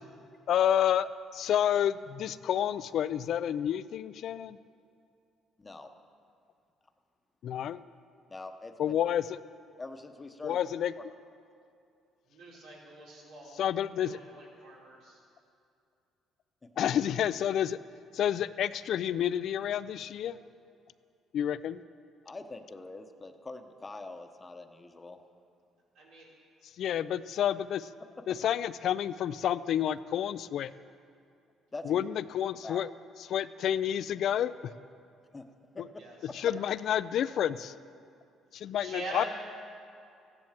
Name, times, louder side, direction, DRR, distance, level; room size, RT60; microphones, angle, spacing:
voice 1, 0.5-4.6 7.4-7.8 8.8-9.4 10.4-10.9 13.6-14.2 16.8-17.8 18.1-20.4 21.3-21.8 26.8-27.9 28.3-30.7 31.8-32.9 33.3-34.7 35.8-35.9 36.3-37.7 38.5-39.2, left 10 dB, 65° left, 15 dB, 0.4 m, -29 dB
voice 2, 5.6-5.9 8.3-8.9 9.8-10.6 16.6-16.7 22.2-25.2 31.7-32.0 32.6-32.8 35.3-35.5 35.7-35.8, left 2 dB, 20° left, 6 dB, 0.9 m, -44 dB
voice 3, 12.3-13.6 13.9-15.2 25.9-26.3 36.0-36.6 38.5-39.3, right 2 dB, 90° right, -4 dB, 4.5 m, -44 dB
15.0 x 10.5 x 7.4 m, 2.5 s
cardioid pair, 110°, 0 cm